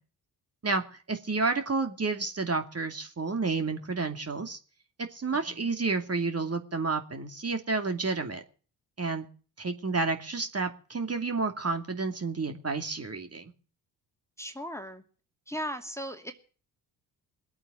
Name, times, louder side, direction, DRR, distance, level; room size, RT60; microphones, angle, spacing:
voice 1, 1.1-4.6 5.1-8.4 9.0-9.3 9.6-13.5, right 4 dB, 30° right, 6 dB, 2.5 m, -30 dB
voice 2, 5.3-5.7 14.4-15.0 15.5-16.3, equal, 5° left, 6 dB, 2.6 m, -37 dB
21.0 x 8.7 x 7.7 m, 0.39 s
hypercardioid pair, 45°, 50 cm